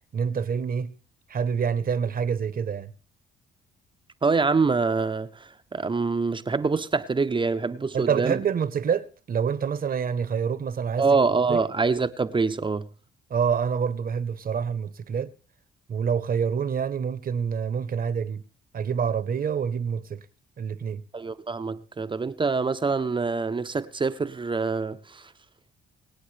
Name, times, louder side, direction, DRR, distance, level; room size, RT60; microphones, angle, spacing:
voice 1, 0.1-0.9 1.3-2.9 7.9-11.0 11.5-11.6 13.3-15.3 15.9-18.4 18.7-20.2 20.6-21.0, right 7 dB, 45° right, 1.0 m, -27 dB
voice 2, 4.2-8.4 11.0-12.9 21.1-25.3, right 4 dB, 25° right, 0.7 m, -25 dB
25.0 x 8.4 x 3.3 m
cardioid pair, 90°, 20 cm